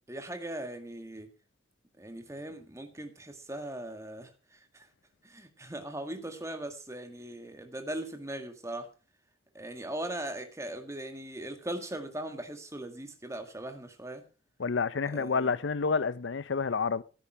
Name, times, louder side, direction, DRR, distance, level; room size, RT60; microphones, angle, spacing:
voice 1, 0.1-1.3 2.0-4.9 5.2-8.9 9.5-14.2 15.1-15.6, right 1 dB, 15° right, 1.8 m, -39 dB
voice 2, 14.6-17.0, left 5 dB, 85° left, 0.6 m, -29 dB
15.0 x 8.9 x 4.9 m
head